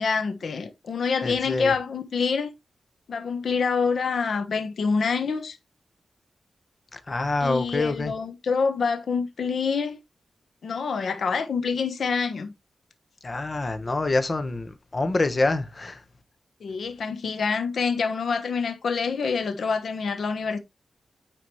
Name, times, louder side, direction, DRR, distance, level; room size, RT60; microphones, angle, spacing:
voice 1, 0.0-2.5 3.1-5.6 7.4-10.0 10.6-12.5 16.6-20.6, left 5 dB, 75° left, 1.1 m, -26 dB
voice 2, 1.2-1.7 6.9-8.1 13.2-16.0, left 2 dB, 35° left, 1.3 m, -26 dB
9.4 x 4.9 x 3.2 m
wide cardioid pair, 100°, 0 cm